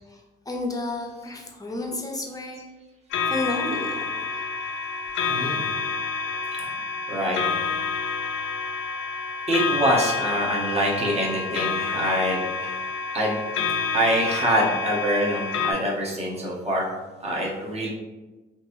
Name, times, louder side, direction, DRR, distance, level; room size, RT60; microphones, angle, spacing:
voice 1, 0.1-2.6 3.3-4.5 6.2-6.4, left 2 dB, 20° left, 1 dB, 0.6 m, -32 dB
sound 1, 3.1-15.7, left 5 dB, 80° left, 0.4 m, -28 dB
voice 2, 5.3-5.7 7.1-7.4 9.5-12.7 13.1-13.4 13.9-16.9 17.2-17.9, equal, 30° right, -3 dB, 0.9 m, -25 dB
2.9 x 2.7 x 2.6 m, 1.2 s
cardioid pair, 90°, 20 cm